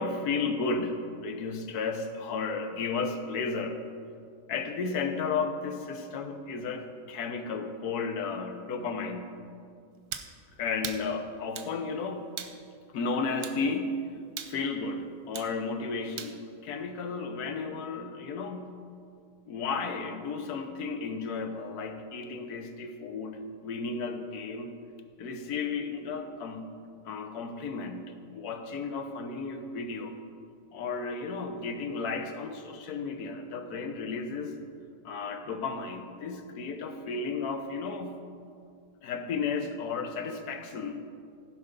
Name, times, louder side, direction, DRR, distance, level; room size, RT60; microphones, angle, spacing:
voice 1, 0.0-3.8 4.5-9.4 10.6-12.3 12.9-14.0 14.5-18.8 19.5-24.7 25.2-26.7 27.0-30.1 30.7-34.5 35.0-38.2 39.0-41.0, left 4 dB, 65° left, 7 dB, 1.3 m, -33 dB
sound 1, 10.1-10.3 10.8-11.0 11.6-11.7 12.4-12.6 13.4-13.6 14.4-14.6 15.3-15.5 16.2-16.4, right 9 dB, 65° right, 1.1 m, -38 dB
15.5 x 5.7 x 5.2 m, 2.3 s
omnidirectional pair, 2.0 m